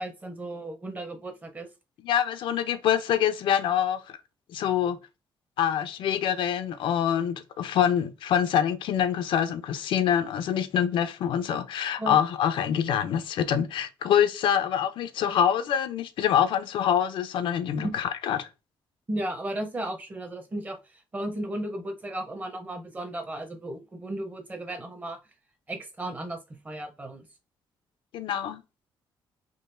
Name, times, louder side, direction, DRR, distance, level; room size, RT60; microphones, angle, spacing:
voice 1, 0.0-1.7 12.0-12.2 17.8-17.9 19.1-25.2 25.7-26.4 26.6-27.3, right 1 dB, 20° right, 0.6 m, -35 dB
voice 2, 2.0-4.2 4.5-5.0 5.6-18.5 28.1-28.6, left 9 dB, 70° left, 0.4 m, -25 dB
3.7 x 2.4 x 2.5 m
cardioid pair, 145°, 9 cm